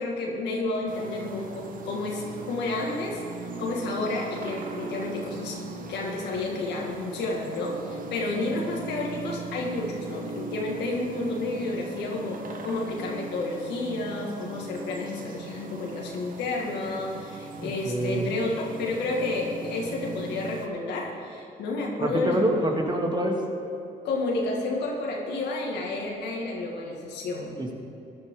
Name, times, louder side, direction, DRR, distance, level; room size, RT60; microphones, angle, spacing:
voice 1, 0.0-3.2 3.6-5.6 5.9-22.5 24.0-27.6, left 2 dB, 80° left, -1 dB, 2.0 m, -30 dB
sound 1, 0.9-20.7, right 4 dB, 55° right, 1.2 m, -40 dB
voice 2, 17.6-18.3 22.0-23.4 27.5-27.7, right 1 dB, 25° right, 1 dB, 2.1 m, -26 dB
15.0 x 10.0 x 3.8 m, 2.8 s
supercardioid pair, 60°, 17 cm